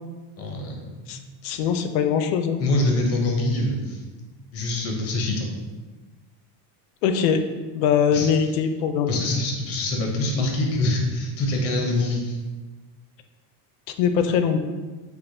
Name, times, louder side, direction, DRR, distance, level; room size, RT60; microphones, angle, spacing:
voice 1, 0.4-0.8 1.1-1.7 2.6-4.0 4.5-5.5 8.1-8.3 9.1-12.4, left 2 dB, 30° left, 0 dB, 0.6 m, -25 dB
voice 2, 1.4-2.6 7.0-7.4 7.7-9.2 14.0-14.6, left 7 dB, 90° left, 8 dB, 0.6 m, -22 dB
6.0 x 2.2 x 2.6 m, 1.3 s
cardioid pair, 165°, 48 cm